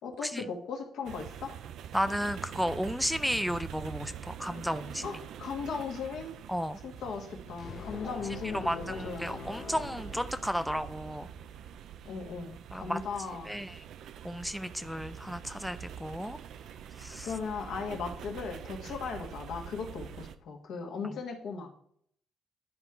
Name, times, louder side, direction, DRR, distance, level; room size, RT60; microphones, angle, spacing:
voice 1, 0.0-1.5 5.0-6.3 6.8-9.5 12.0-13.5 17.2-21.7, left 5 dB, 80° left, 2 dB, 1.7 m, -37 dB
sound 1, 1.0-20.3, right 9 dB, 75° right, 0.5 m, -45 dB
voice 2, 1.9-5.1 6.5-6.8 8.5-11.3 12.7-13.0 13.5-13.8 14.2-16.4 17.0-17.3, equal, ahead, 10 dB, 0.4 m, -33 dB
sound 2, 7.6-11.1, left 6 dB, 60° left, 0.6 m, -45 dB
10.5 x 4.4 x 3.8 m, 0.63 s
cardioid pair, 90°, 0 cm